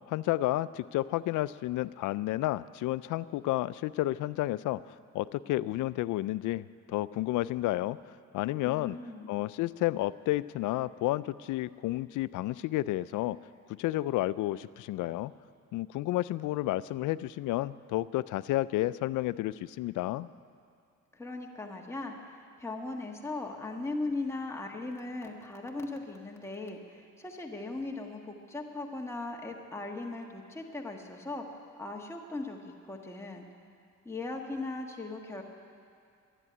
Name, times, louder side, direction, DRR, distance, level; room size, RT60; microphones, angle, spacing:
voice 1, 0.1-4.8 5.1-8.0 8.3-9.0 9.3-13.4 13.8-15.3 15.7-20.3, left 16 dB, 85° left, 17 dB, 0.5 m, -31 dB
voice 2, 8.6-9.3 21.1-31.5 31.8-33.5 34.0-35.4, left 2 dB, 10° left, 0 dB, 1.6 m, -38 dB
12.0 x 11.0 x 9.8 m, 2.4 s
cardioid pair, 90°, 30 cm